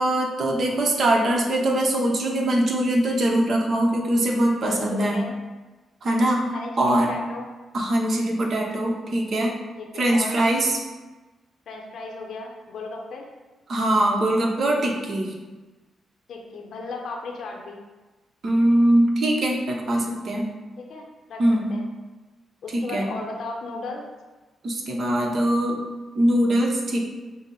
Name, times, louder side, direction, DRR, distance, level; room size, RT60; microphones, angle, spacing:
voice 1, 0.0-5.2 6.0-7.1 7.7-9.6 9.9-10.8 13.7-15.3 18.4-20.5 21.4-21.7 22.7-23.1 24.6-25.8 26.1-27.0, right 1 dB, 55° right, 0 dB, 0.9 m, -22 dB
voice 2, 4.6-5.4 6.5-7.5 9.8-10.4 11.7-13.3 16.3-17.8 20.8-21.4 21.7-21.9 22.6-24.0, left 3 dB, 70° left, 0 dB, 0.6 m, -36 dB
5.6 x 2.1 x 4.1 m, 1.2 s
cardioid pair, 65°, 0 cm